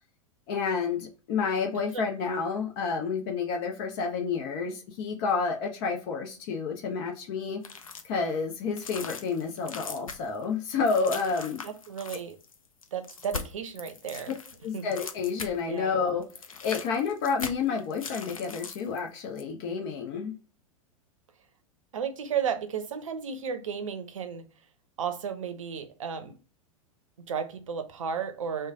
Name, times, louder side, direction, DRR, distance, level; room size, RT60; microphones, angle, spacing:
voice 1, 0.5-7.6 8.0-11.6 14.6-16.3 16.6-20.3, left 5 dB, 45° left, 0.7 m, -30 dB
sound 1, 7.6-8.2 8.5-15.8 16.1-19.0 19.4-19.5, left 5 dB, 80° left, 0.5 m, -41 dB
voice 2, 11.6-12.4 12.9-14.3 14.7-14.9 15.7-16.0 21.9-24.4 25.0-26.4 27.2-28.7, right 7 dB, 65° right, 0.6 m, -33 dB
3.2 x 2.2 x 3.5 m
figure-of-eight pair, 95°, 18 cm